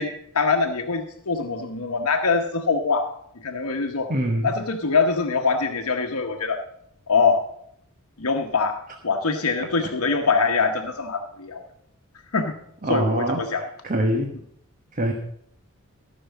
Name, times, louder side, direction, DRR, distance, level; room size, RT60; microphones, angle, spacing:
voice 1, 0.0-3.1 3.4-4.1 4.4-6.6 7.1-7.4 8.2-11.6 12.3-12.6 12.9-13.6, left 4 dB, 75° left, 4 dB, 1.0 m, -23 dB
voice 2, 4.1-4.5 9.6-9.7 12.8-14.3 14.9-15.1, right 1 dB, 40° right, 4 dB, 1.1 m, -24 dB
14.0 x 6.2 x 7.1 m, 0.72 s
head